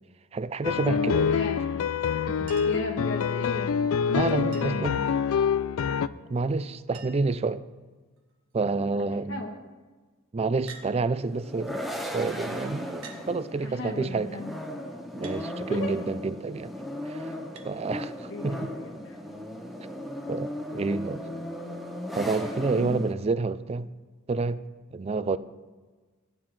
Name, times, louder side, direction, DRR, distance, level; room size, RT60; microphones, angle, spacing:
voice 1, 0.3-1.4 2.4-2.6 4.1-5.0 6.3-7.6 8.5-9.4 10.3-14.3 15.1-16.7 17.1-17.3 17.6-18.6 20.3-21.3 22.2-23.9 24.3-24.6 24.9-25.4, right 3 dB, 30° right, 0.4 m, -29 dB
sound 1, 0.6-6.1, left 7 dB, 85° left, 0.4 m, -26 dB
voice 2, 1.2-1.8 2.6-3.8 4.1-4.9 8.9-9.5 13.6-14.5 15.7-15.9 18.3-19.2 22.8-23.0, left 2 dB, 65° left, 1.4 m, -35 dB
Chink clink, 2.5-2.9 4.5-4.9 6.3-6.4 6.6-6.7 6.9-7.4 8.2-8.5 10.7-10.9 12.0-12.1 13.0-13.3 15.2-15.4 17.6-17.7 19.1-19.2, right 5 dB, 80° right, 1.5 m, -46 dB
sound 2, 11.2-23.1, left 1 dB, ahead, 0.8 m, -37 dB
16.0 x 9.5 x 3.2 m
head